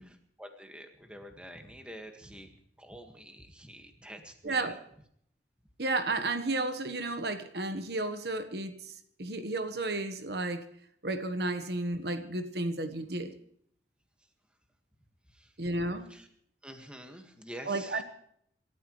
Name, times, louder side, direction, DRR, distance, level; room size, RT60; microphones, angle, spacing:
voice 1, 0.0-4.8 15.3-15.5 16.1-16.3 16.6-18.0, equal, 5° right, 4 dB, 1.8 m, -48 dB
voice 2, 4.4-4.8 5.8-10.6 11.0-13.3 15.6-16.1 17.7-18.0, right 2 dB, 60° right, 8 dB, 1.3 m, -32 dB
27.0 x 13.5 x 3.2 m, 0.68 s
head